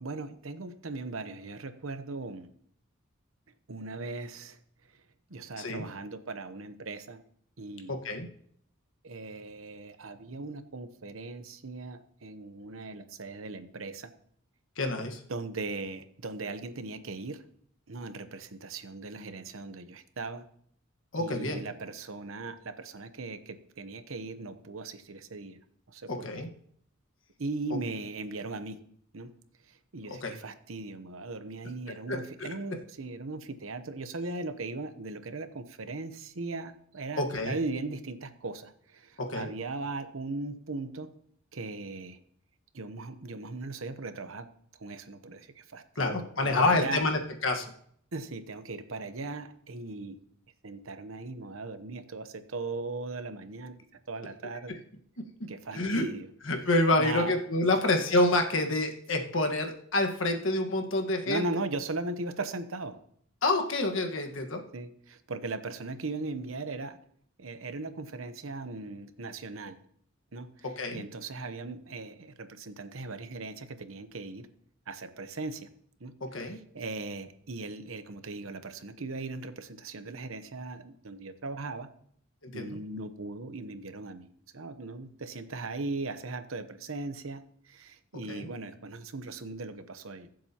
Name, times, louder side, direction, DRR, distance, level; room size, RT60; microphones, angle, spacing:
voice 1, 0.0-2.5 3.7-4.6 5.3-7.2 7.6-8.0 9.0-14.1 15.3-17.4 17.9-20.4 21.1-25.6 25.9-26.3 27.4-28.8 29.1-29.3 29.7-41.1 41.5-42.2 42.7-44.5 44.8-47.0 48.1-50.2 50.6-53.8 54.1-54.7 55.5-56.3 57.0-57.3 61.3-63.0 64.7-67.0 67.4-69.8 70.3-70.7 70.9-74.5 74.9-75.7 76.0-81.9 82.5-84.3 84.5-90.3, right 3 dB, 75° right, 10 dB, 0.9 m, -38 dB
voice 2, 7.9-8.3 14.8-15.2 21.1-21.6 26.1-26.5 30.1-30.3 32.1-32.5 37.2-37.6 39.2-39.5 45.9-47.7 55.2-55.3 55.7-56.1 56.4-61.4 63.4-64.6 70.8-71.1 76.2-76.6 82.4-82.8 88.3-88.5, left 2 dB, 65° left, 4 dB, 1.5 m, -28 dB
22.5 x 7.7 x 2.9 m, 0.64 s
head